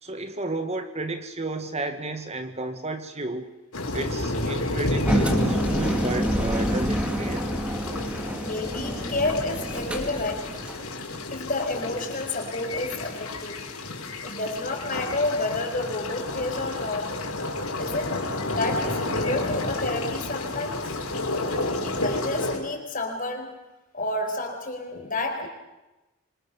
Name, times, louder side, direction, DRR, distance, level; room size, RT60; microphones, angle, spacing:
voice 1, 0.0-3.5 3.9-7.5, right 2 dB, 30° right, 8 dB, 1.7 m, -32 dB
sound 1, 3.7-22.6, left 2 dB, 80° left, 5.1 m, -31 dB
Engine, 5.0-10.9, equal, 5° right, 2.6 m, -28 dB
voice 2, 8.4-10.6 11.3-13.7 14.2-17.3 17.8-21.0 21.8-23.6 23.9-25.5, left 2 dB, 40° left, 4 dB, 4.9 m, -30 dB
26.0 x 25.0 x 7.0 m, 1.0 s
head